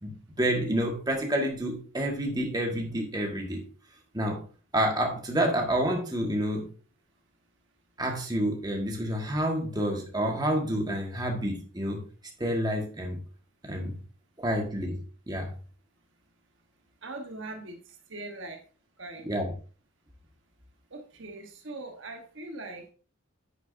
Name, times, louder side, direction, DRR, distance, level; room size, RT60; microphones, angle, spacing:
voice 1, 0.0-3.6 4.1-4.4 4.7-6.7 8.0-12.0 12.4-13.2 13.6-14.0 14.4-15.0 15.3-15.5 19.2-19.5, right 1 dB, 20° right, 1 dB, 1.5 m, -29 dB
voice 2, 17.0-17.8 18.1-18.6 19.0-19.5 20.9-22.9, right 2 dB, 60° right, 5 dB, 1.1 m, -41 dB
10.5 x 6.9 x 2.6 m, 0.38 s
head